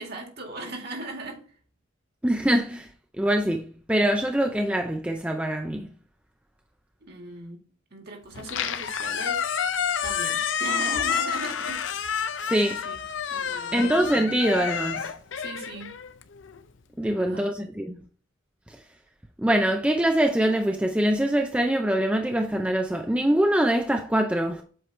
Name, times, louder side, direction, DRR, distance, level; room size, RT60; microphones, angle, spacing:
voice 1, 0.0-1.5 7.0-7.6 7.9-9.5 10.0-11.8 12.6-13.0 13.3-13.8 15.3-15.9 17.0-17.5, right 2 dB, 50° right, 1.9 m, -38 dB
voice 2, 2.2-2.9 3.2-5.9 12.4-12.8 13.7-15.1 17.0-18.0 19.4-24.6, right 1 dB, 5° right, 0.4 m, -24 dB
Squeak, 8.3-16.6, left 7 dB, 65° left, 0.6 m, -29 dB
7.9 x 4.7 x 3.2 m
head